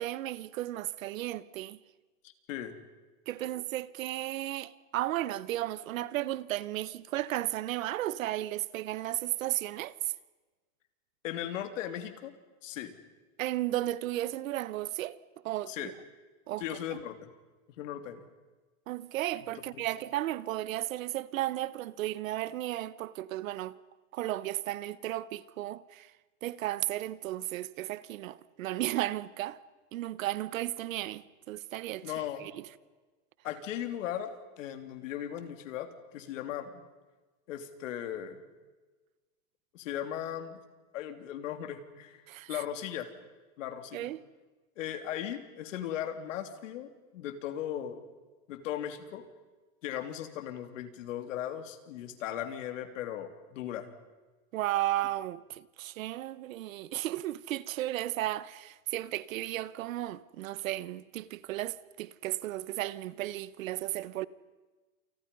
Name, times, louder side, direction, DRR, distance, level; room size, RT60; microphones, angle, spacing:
voice 1, 0.0-1.8 3.3-10.1 13.4-15.2 15.4-15.9 16.5-16.6 16.9-17.0 18.9-23.8 24.1-26.1 26.4-29.6 29.9-32.1 32.4-32.6 42.3-42.6 43.9-44.2 54.5-64.3, right 15 dB, 80° right, 1.2 m, -34 dB
voice 2, 2.2-2.7 3.4-3.5 11.2-12.3 12.6-12.9 15.7-15.9 16.6-17.3 17.8-18.3 19.7-19.9 32.0-32.4 33.4-36.7 37.5-38.4 39.7-40.6 40.9-42.2 42.5-43.1 43.6-44.1 44.8-48.0 48.5-49.2 49.8-53.9, left 10 dB, 70° left, 3.2 m, -37 dB
30.0 x 28.5 x 5.5 m
supercardioid pair, 175°, 39 cm